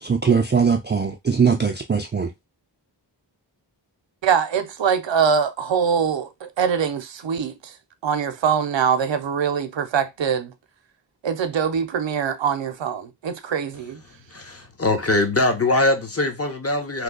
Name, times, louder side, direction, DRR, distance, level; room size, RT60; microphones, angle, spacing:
voice 1, 0.0-2.3, right 6 dB, 25° right, 0.4 m, -20 dB
voice 2, 4.2-7.7 8.0-10.5 11.2-14.0, right 7 dB, 75° right, 0.6 m, -23 dB
voice 3, 14.3-17.0, left 2 dB, 30° left, 0.8 m, -22 dB
3.0 x 2.2 x 3.7 m
wide cardioid pair, 65°, 45 cm